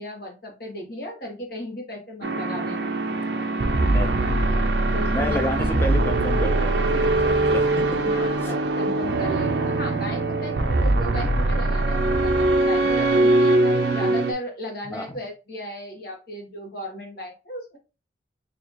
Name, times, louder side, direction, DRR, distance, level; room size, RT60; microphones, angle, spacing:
voice 1, 0.0-2.9 4.3-4.7 4.9-5.7 8.1-17.8, left 1 dB, 55° left, 1 dB, 1.3 m, -36 dB
sound 1, 2.2-14.3, right 2 dB, 65° right, 0.5 m, -22 dB
voice 2, 3.9-4.6 5.1-7.7 8.4-8.5 14.9-15.1, left 1 dB, 10° left, 4 dB, 0.6 m, -30 dB
4.4 x 2.8 x 2.9 m, 0.30 s
head